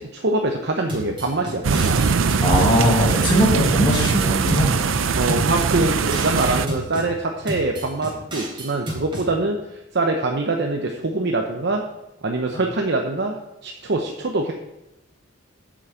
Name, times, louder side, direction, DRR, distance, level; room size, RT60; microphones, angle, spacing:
voice 1, 0.0-2.0 5.1-11.8 12.2-13.3 13.6-14.5, right 2 dB, 60° right, 2 dB, 0.9 m, -24 dB
sound 1, 0.9-2.7 3.1-4.9 5.3-7.1 7.5-9.3, right 1 dB, 25° right, 3.5 m, -32 dB
sound 2, 1.6-6.7, right 5 dB, 80° right, 0.6 m, -21 dB
voice 2, 2.4-4.7 12.5-12.6, equal, 25° left, -2 dB, 1.7 m, -20 dB
7.8 x 6.3 x 8.1 m, 0.96 s
head